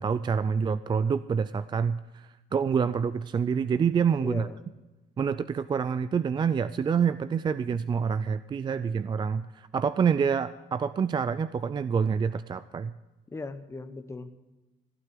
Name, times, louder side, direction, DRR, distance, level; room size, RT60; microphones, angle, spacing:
voice 1, 0.0-4.5 5.2-12.9, right 6 dB, 25° right, 14 dB, 0.4 m, -27 dB
voice 2, 4.2-4.6 13.3-14.4, left 3 dB, 15° left, 9 dB, 1.0 m, -38 dB
15.5 x 8.9 x 7.6 m, 1.1 s
cardioid pair, 110°, 17 cm